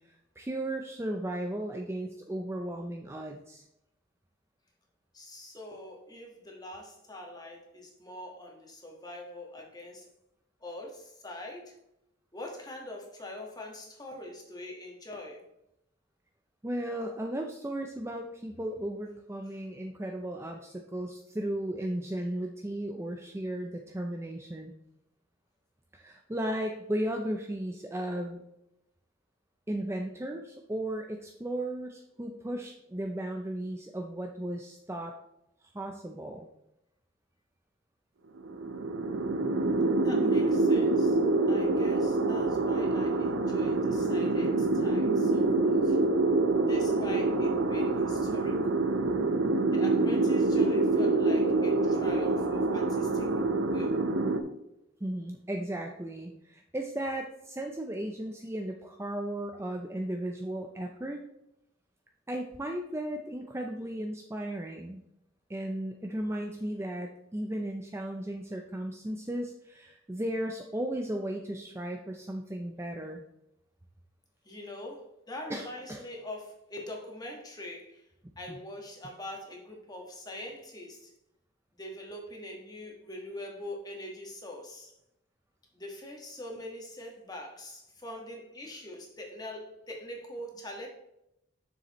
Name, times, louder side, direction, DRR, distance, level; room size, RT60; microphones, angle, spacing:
voice 1, 0.1-3.6 16.6-24.7 25.9-28.4 29.7-35.2 35.6-36.5 55.0-61.2 62.3-65.0 65.5-73.2 75.5-76.0 78.5-78.6, right 1 dB, 15° right, 3 dB, 0.4 m, -35 dB
voice 2, 5.1-10.1 10.6-11.7 12.3-15.4 40.0-41.2 41.5-46.0 46.7-48.9 49.7-54.0 74.4-78.1 78.4-81.1 81.8-84.9 85.7-90.9, left 1 dB, 20° left, 0 dB, 1.4 m, -43 dB
sound 1, 38.4-54.4, right 2 dB, 90° right, 0.7 m, -26 dB
7.2 x 6.6 x 3.0 m, 0.83 s
head